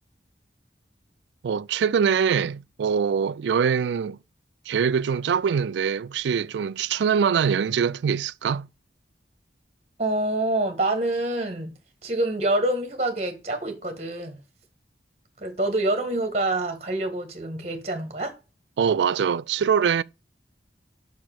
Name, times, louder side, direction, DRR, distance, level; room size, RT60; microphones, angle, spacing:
voice 1, 1.4-4.2 4.7-8.7 18.8-20.0, right 7 dB, 80° right, 0.3 m, -23 dB
voice 2, 10.0-11.7 12.0-14.4 15.4-18.3, right 2 dB, 35° right, 1.6 m, -26 dB
5.6 x 4.7 x 5.9 m
head